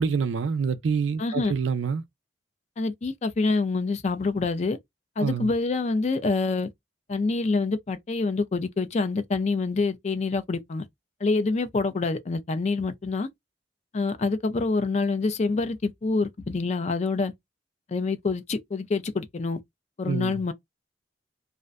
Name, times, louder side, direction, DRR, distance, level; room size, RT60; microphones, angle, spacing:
voice 1, 0.0-2.0 5.2-5.5 20.1-20.4, right 5 dB, 85° right, 0.4 m, -26 dB
voice 2, 1.2-1.5 2.8-4.8 5.2-6.7 7.1-10.8 11.2-13.3 13.9-17.3 17.9-19.6 20.0-20.5, left 3 dB, 35° left, 0.4 m, -26 dB
2.5 x 2.1 x 2.4 m
head